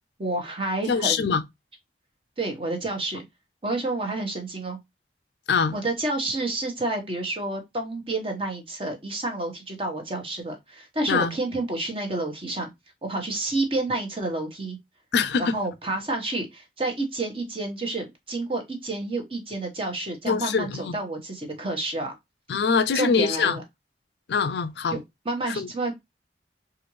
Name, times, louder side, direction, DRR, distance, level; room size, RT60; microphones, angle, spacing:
voice 1, 0.2-1.3 2.4-3.2 3.6-4.8 5.7-12.7 13.0-14.8 15.4-22.1 22.9-23.6 24.9-25.9, right 2 dB, 30° right, 1.1 m, -29 dB
voice 2, 0.9-1.4 5.5-5.8 11.1-11.3 15.1-15.6 20.3-21.0 22.5-23.6 24.3-25.0 25.5-25.7, left 5 dB, 65° left, 0.4 m, -23 dB
4.2 x 2.5 x 3.1 m
head